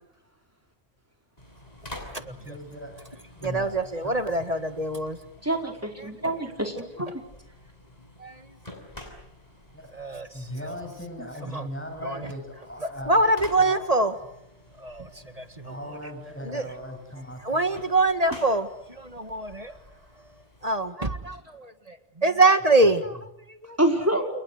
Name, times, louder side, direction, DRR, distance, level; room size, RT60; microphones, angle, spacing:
sound 1, 1.4-20.9, left 1 dB, 35° left, 7.1 m, -49 dB
voice 1, 2.2-3.0 3.4-4.5 9.7-10.0 10.3-13.8 15.6-17.8, equal, 10° left, 4 dB, 7.6 m, -39 dB
voice 2, 3.4-5.2 6.0-6.1 8.2-8.4 9.9-10.5 11.5-11.7 12.0-12.3 13.1-14.1 14.8-15.7 16.4-16.7 17.4-19.8 20.6-23.8, right 2 dB, 35° right, 10 dB, 1.9 m, -25 dB
voice 3, 5.4-7.1 23.8-24.3, right 1 dB, 15° right, 4 dB, 5.0 m, -26 dB
29.5 x 29.0 x 6.6 m, 0.80 s
omnidirectional pair, 1.1 m